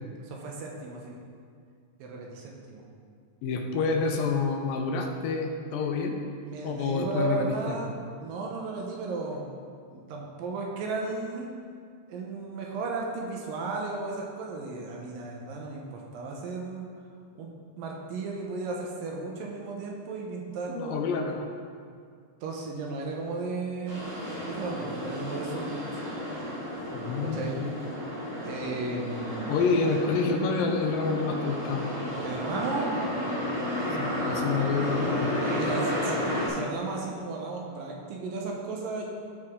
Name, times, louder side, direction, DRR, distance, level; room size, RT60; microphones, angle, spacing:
voice 1, 0.2-1.2 2.0-2.8 6.4-9.5 9.9-11.5 12.1-16.9 17.4-17.5 17.8-21.0 22.4-24.1 24.4-26.0 27.2-27.6 28.4-29.6 32.2-33.4 35.5-39.1, right 3 dB, 75° right, -1 dB, 2.5 m, -34 dB
voice 2, 3.4-6.2 6.6-7.8 20.7-21.5 26.9-27.7 29.5-31.9 34.0-35.3, left 4 dB, 80° left, 3 dB, 2.2 m, -28 dB
sound 1, 23.9-36.5, equal, 50° right, 3.4 m, -32 dB
13.5 x 4.8 x 3.7 m, 2.2 s
omnidirectional pair, 4.2 m